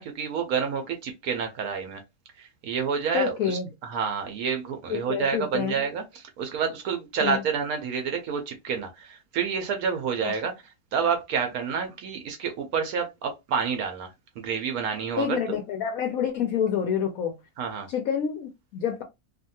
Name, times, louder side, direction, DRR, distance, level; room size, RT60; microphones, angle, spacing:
voice 1, 0.0-2.0 2.4-15.4 17.6-17.9, right 6 dB, 70° right, 0.9 m, -29 dB
voice 2, 3.1-3.7 4.9-5.8 7.2-7.4 10.2-10.3 15.2-17.4 17.9-19.0, left 8 dB, 70° left, 0.8 m, -28 dB
2.7 x 2.5 x 2.7 m
omnidirectional pair, 1.9 m